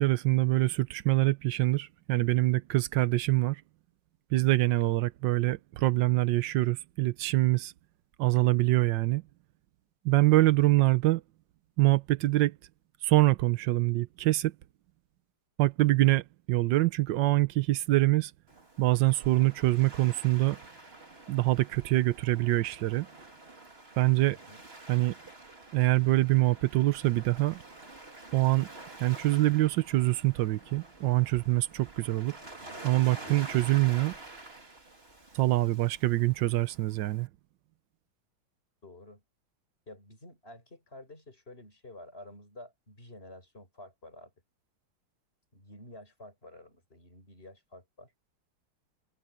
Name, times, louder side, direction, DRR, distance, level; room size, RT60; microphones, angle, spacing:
voice 1, 0.0-3.6 4.3-7.7 8.2-9.2 10.0-11.2 11.8-12.6 13.0-14.5 15.6-18.3 18.8-20.6 21.3-23.1 24.0-24.4 24.9-25.2 25.7-27.6 28.3-28.7 29.0-32.4 32.8-34.1 35.3-37.3, right 17 dB, 70° right, 1.2 m, -25 dB
Waves surf, 18.5-37.3, right 2 dB, 30° right, 3.3 m, -49 dB
voice 2, 24.3-24.7 33.2-33.6 38.8-39.2 39.9-44.3 45.5-48.1, left 1 dB, 25° left, 6.2 m, -50 dB
omnidirectional pair, 2.3 m